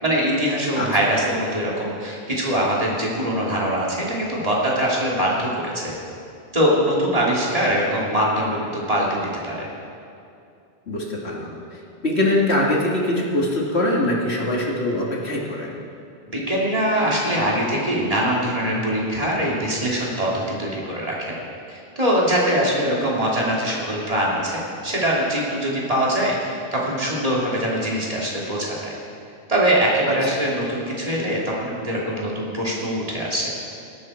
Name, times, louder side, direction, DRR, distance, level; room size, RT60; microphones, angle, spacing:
voice 1, 0.0-5.9 6.5-9.7 16.3-21.3 21.7-29.0 29.5-33.5, equal, 30° right, -5 dB, 3.1 m, -23 dB
voice 2, 10.9-15.7, left 1 dB, 70° left, -3 dB, 2.5 m, -23 dB
18.0 x 13.0 x 4.4 m, 2.5 s
omnidirectional pair, 1.1 m